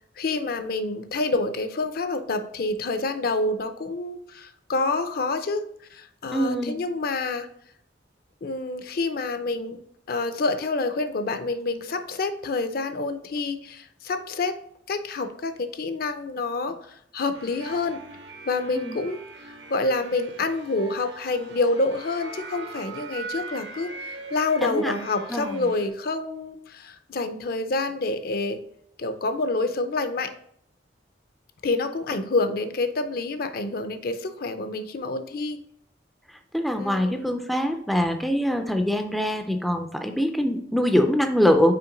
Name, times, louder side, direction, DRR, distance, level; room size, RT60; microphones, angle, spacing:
voice 1, 0.2-5.6 5.9-7.5 8.4-9.8 10.1-14.5 14.9-18.0 18.5-28.6 29.0-30.3 31.6-35.6 36.8-37.2, left 3 dB, 55° left, 9 dB, 0.5 m, -28 dB
voice 2, 6.3-6.8 18.7-19.0 24.6-24.9 25.3-25.6 36.5-41.7, equal, ahead, 5 dB, 0.4 m, -23 dB
sound 1, 17.3-25.9, right 3 dB, 75° right, 0.9 m, -41 dB
5.8 x 4.4 x 3.8 m, 0.68 s
head